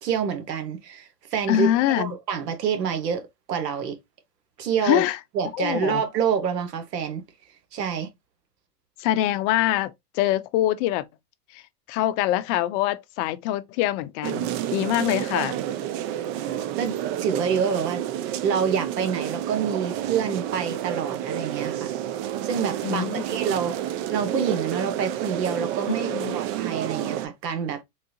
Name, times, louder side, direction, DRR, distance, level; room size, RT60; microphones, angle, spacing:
voice 1, 0.0-1.7 1.9-4.0 4.6-5.0 5.3-7.2 7.7-8.1 16.8-16.9 17.2-18.0 18.4-21.9 22.4-23.7 24.1-27.8, right 7 dB, 90° right, 1.1 m, -27 dB
voice 2, 1.5-2.1 4.8-5.2 5.6-6.0 9.0-11.0 11.5-11.6 11.9-15.6 22.8-23.2 25.9-26.4, left 13 dB, 50° left, 0.5 m, -24 dB
sound 1, 14.2-27.3, right 11 dB, 40° right, 0.4 m, -30 dB
3.8 x 2.4 x 2.6 m
supercardioid pair, 120°, 47 cm